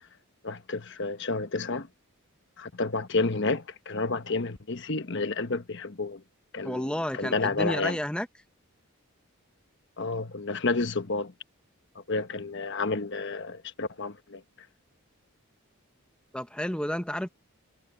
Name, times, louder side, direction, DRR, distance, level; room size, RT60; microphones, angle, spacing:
voice 1, 0.4-1.9 2.6-6.2 6.5-8.0 10.0-11.3 12.1-14.4, left 3 dB, 55° left, 1.2 m, -30 dB
voice 2, 6.6-8.3 16.3-17.3, equal, 5° left, 0.9 m, -31 dB
head